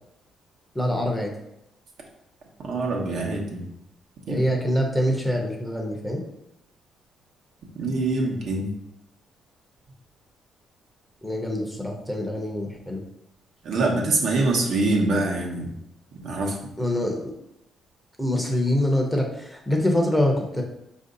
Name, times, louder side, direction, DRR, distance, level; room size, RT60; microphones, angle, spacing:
voice 1, 0.7-1.3 4.3-6.2 11.2-13.0 16.8-17.2 18.2-20.6, left 1 dB, 5° left, 1 dB, 0.8 m, -24 dB
voice 2, 2.7-3.6 4.3-4.4 7.7-8.7 13.6-15.7 16.1-16.5, right 2 dB, 65° right, -1 dB, 1.0 m, -24 dB
4.4 x 2.7 x 3.9 m, 0.81 s
cardioid pair, 90°, 0 cm